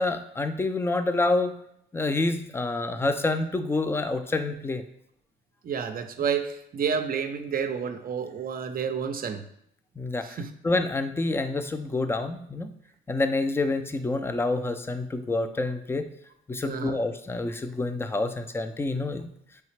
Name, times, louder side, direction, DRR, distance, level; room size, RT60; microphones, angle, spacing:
voice 1, 0.0-1.5 1.9-4.8 10.0-10.4 10.6-12.7 13.1-16.0 16.5-19.3, left 2 dB, 10° left, 9 dB, 0.3 m, -27 dB
voice 2, 5.6-9.4 10.2-10.5 16.6-17.0, right 6 dB, 45° right, 8 dB, 0.5 m, -30 dB
3.9 x 3.3 x 3.2 m, 0.72 s
cardioid pair, 90°, 20 cm